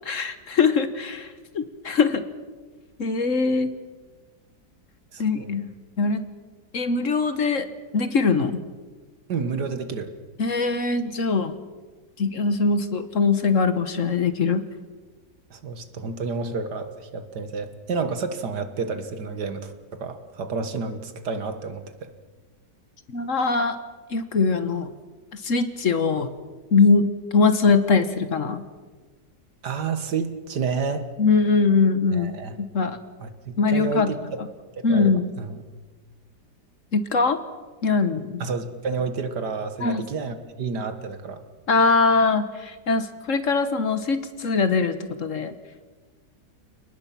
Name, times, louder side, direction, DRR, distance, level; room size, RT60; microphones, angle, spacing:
voice 1, 0.0-2.2 3.0-3.7 5.2-5.7 6.0-6.2 6.7-7.7 7.9-8.6 10.4-11.5 12.2-14.6 23.1-23.8 24.1-24.9 25.3-26.3 26.7-28.6 31.2-33.0 33.6-34.1 34.8-35.3 36.9-37.4 37.8-38.4 39.8-40.0 41.7-45.5, left 4 dB, 50° left, 11 dB, 1.4 m, -22 dB
voice 2, 5.1-5.5 9.3-10.1 15.5-22.1 29.6-31.1 32.1-32.6 33.2-34.2 34.7-35.6 38.4-41.4, right 4 dB, 70° right, 9 dB, 2.2 m, -30 dB
30.0 x 19.5 x 5.9 m, 1.3 s
omnidirectional pair, 1.8 m